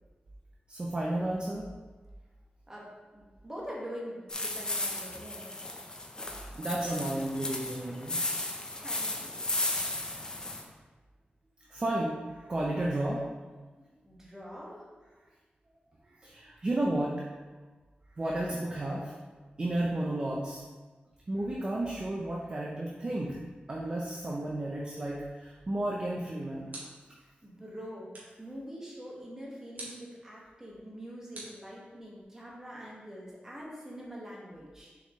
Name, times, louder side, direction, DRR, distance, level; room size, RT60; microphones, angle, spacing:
voice 1, 0.7-1.7 6.6-8.2 10.1-10.2 11.7-13.2 16.2-17.1 18.2-19.1 19.6-20.6 21.3-23.4 23.7-26.8, right 1 dB, 30° right, -3 dB, 0.6 m, -32 dB
voice 2, 2.7-5.6 8.8-9.4 14.0-14.9 27.2-28.1 28.4-34.9, equal, 15° right, -5 dB, 1.5 m, -44 dB
sound 1, 4.3-10.6, left 2 dB, 25° left, 0.7 m, -35 dB
sound 2, 26.7-27.2 28.1-28.5 29.8-30.1 31.3-32.2, right 1 dB, 65° right, 1.8 m, -47 dB
6.8 x 4.8 x 3.1 m, 1.3 s
wide cardioid pair, 145°, 3 cm